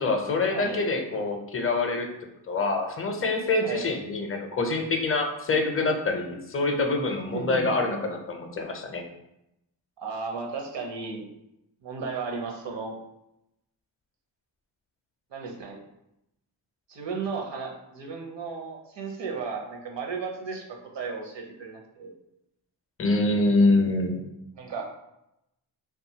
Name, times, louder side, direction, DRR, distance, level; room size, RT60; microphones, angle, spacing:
voice 1, 0.0-2.1 2.5-9.0 23.0-24.2, left 2 dB, 30° left, 3 dB, 0.5 m, -25 dB
voice 2, 0.5-0.9 3.6-3.9 7.3-7.7 10.0-11.3 11.8-13.0 15.3-15.8 16.9-22.1 24.5-24.9, right 4 dB, 60° right, 1 dB, 0.7 m, -34 dB
2.6 x 2.4 x 2.8 m, 0.86 s
supercardioid pair, 50°, 48 cm